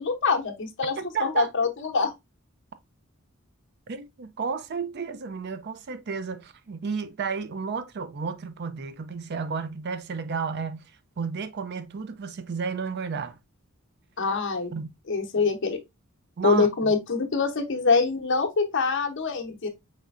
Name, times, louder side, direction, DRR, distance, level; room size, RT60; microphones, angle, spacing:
voice 1, 0.0-0.9 1.2-2.1 14.2-14.7 15.1-15.8 16.4-19.7, left 4 dB, 60° left, 0.8 m, -24 dB
voice 2, 1.0-1.5 3.9-10.9 11.2-13.4 14.7-14.9 16.4-16.9, right 5 dB, 50° right, 0.4 m, -32 dB
4.9 x 3.2 x 2.4 m
head